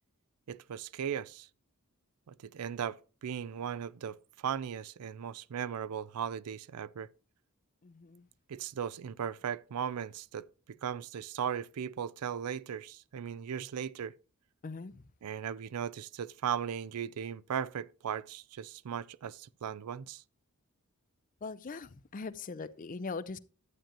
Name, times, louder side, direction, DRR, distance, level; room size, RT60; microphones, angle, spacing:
voice 1, 0.5-1.5 2.3-4.2 4.4-7.1 8.5-14.1 15.2-20.2, right 8 dB, 85° right, 0.4 m, -37 dB
voice 2, 7.8-8.3 14.6-15.1 21.4-23.4, left 4 dB, 35° left, 0.5 m, -41 dB
11.5 x 8.9 x 2.9 m
head